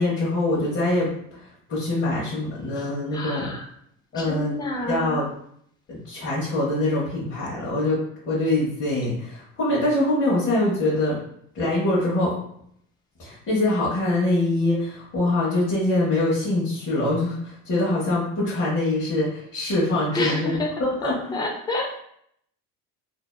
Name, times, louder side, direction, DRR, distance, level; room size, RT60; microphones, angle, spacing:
voice 1, 0.0-1.4 1.7-3.5 4.1-4.6 4.9-5.3 5.9-8.0 8.3-11.2 11.5-12.3 13.2-21.4, left 2 dB, 35° left, -8 dB, 0.9 m, -24 dB
voice 2, 3.1-3.7 4.1-5.2 20.1-20.7 21.0-22.0, left 2 dB, 10° left, 0 dB, 0.4 m, -29 dB
2.6 x 2.2 x 2.3 m, 0.69 s
cardioid pair, 125°, 36 cm